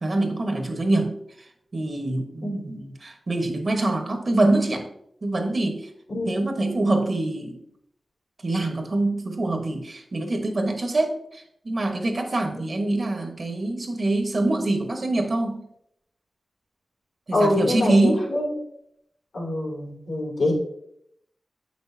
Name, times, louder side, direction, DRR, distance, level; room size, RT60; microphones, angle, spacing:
voice 1, 0.0-1.2 1.7-4.9 5.2-5.9 6.3-7.6 8.4-15.7 17.3-18.2, right 2 dB, 45° right, 5 dB, 1.0 m, -24 dB
voice 2, 17.3-18.6 19.3-20.5, left 1 dB, 85° left, -3 dB, 2.6 m, -25 dB
7.7 x 6.2 x 2.6 m, 0.73 s
wide cardioid pair, 105°, 0 cm